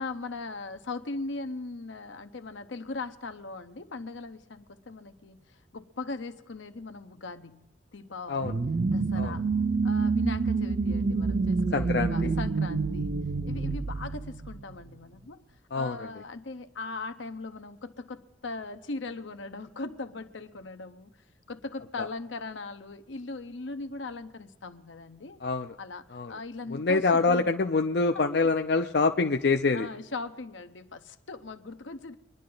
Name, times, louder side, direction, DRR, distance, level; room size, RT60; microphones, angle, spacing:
voice 1, 0.0-8.6 8.9-9.5 9.8-13.1 13.4-15.4 15.7-21.1 21.5-25.4 25.8-27.5 28.1-28.5 29.7-32.1, left 3 dB, 75° left, 9 dB, 0.9 m, -39 dB
sound 1, 8.4-14.9, right 4 dB, 40° right, 0.5 m, -27 dB
voice 2, 11.7-12.3 15.7-16.0 22.0-22.1 25.4-25.7 26.1-26.3 26.7-29.9, left 3 dB, 55° left, 5 dB, 0.5 m, -25 dB
24.5 x 10.5 x 3.9 m, 1.1 s
head